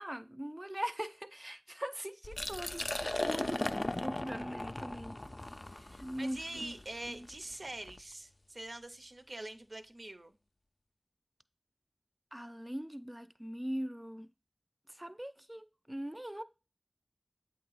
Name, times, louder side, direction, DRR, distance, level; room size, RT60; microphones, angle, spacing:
voice 1, 0.0-3.6 4.0-5.1 6.0-6.8 7.1-7.3 12.3-14.3 15.0-16.4, equal, 20° right, 0.4 m, -41 dB
Liquid, 2.2-8.0, left 1 dB, 45° left, 0.3 m, -38 dB
voice 2, 5.7-10.4, right 2 dB, 70° right, 0.6 m, -45 dB
8.3 x 2.9 x 5.5 m
wide cardioid pair, 50°, 0 cm